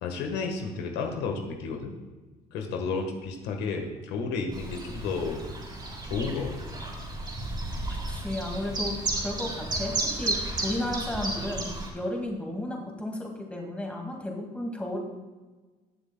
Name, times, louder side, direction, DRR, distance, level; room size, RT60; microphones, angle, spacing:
voice 1, 0.0-1.9 2.5-5.4 6.0-6.5, left 4 dB, 90° left, 3 dB, 1.4 m, -32 dB
Chirp tweet, 4.5-11.9, right 2 dB, 25° right, 3.3 m, -33 dB
voice 2, 7.9-15.0, left 1 dB, 5° left, 0 dB, 2.1 m, -33 dB
19.5 x 7.0 x 2.3 m, 1.3 s
cardioid pair, 110°, 17 cm